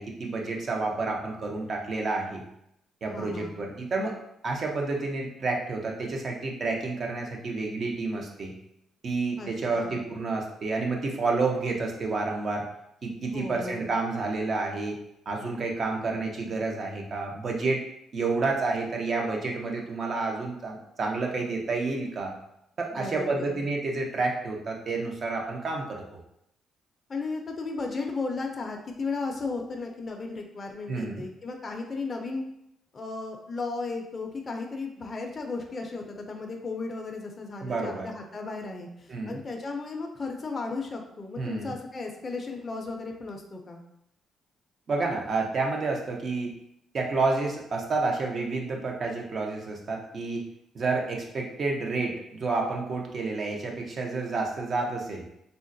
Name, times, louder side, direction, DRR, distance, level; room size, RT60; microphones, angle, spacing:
voice 1, 0.0-2.4 3.0-4.2 4.4-8.5 9.0-12.7 13.0-15.0 15.3-17.8 18.1-22.3 22.8-26.0 30.9-31.2 37.6-38.1 39.1-39.4 41.4-41.7 44.9-46.5 46.9-50.4 50.7-55.2, right 3 dB, 50° right, 0 dB, 0.7 m, -29 dB
voice 2, 3.1-3.6 9.4-10.0 13.3-13.9 22.9-23.6 27.1-32.4 32.9-43.8, left 3 dB, 35° left, 2 dB, 0.4 m, -35 dB
3.7 x 2.1 x 2.6 m, 0.79 s
cardioid pair, 90°, 0 cm